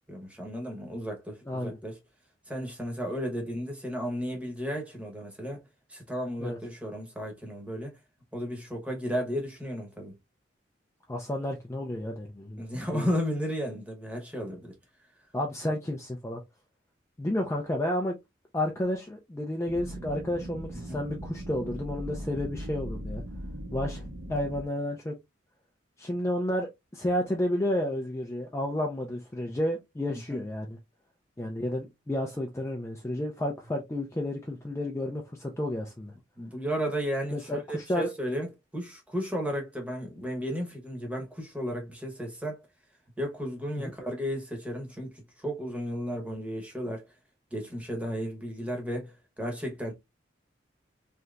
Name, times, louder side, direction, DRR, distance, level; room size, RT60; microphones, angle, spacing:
voice 1, 0.1-2.0 2.5-5.6 5.9-7.9 8.3-10.2 12.6-14.7 20.9-21.0 29.5-29.6 30.3-30.4 36.4-42.6 43.2-47.0 47.5-49.9, equal, 5° right, 0.9 m, -34 dB
voice 2, 1.5-1.8 6.4-6.6 11.1-12.6 12.9-13.1 15.3-16.4 17.2-18.1 18.5-23.2 23.7-24.0 24.3-25.1 26.0-30.8 31.4-36.1 37.3-38.1 43.8-43.9, left 1 dB, 15° left, 0.4 m, -31 dB
sound 1, 19.7-24.6, equal, 65° right, 0.8 m, -39 dB
3.3 x 2.8 x 2.4 m
head